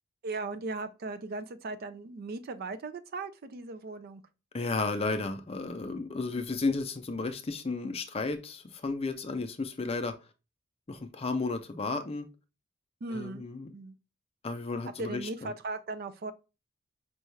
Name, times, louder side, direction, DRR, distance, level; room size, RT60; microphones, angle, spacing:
voice 1, 0.2-4.2 13.0-13.4 13.7-13.9 15.0-16.3, right 3 dB, 45° right, 0.4 m, -37 dB
voice 2, 4.5-10.1 10.9-12.3 13.1-13.7 14.4-15.5, left 3 dB, 30° left, 0.5 m, -33 dB
5.3 x 2.3 x 3.1 m
head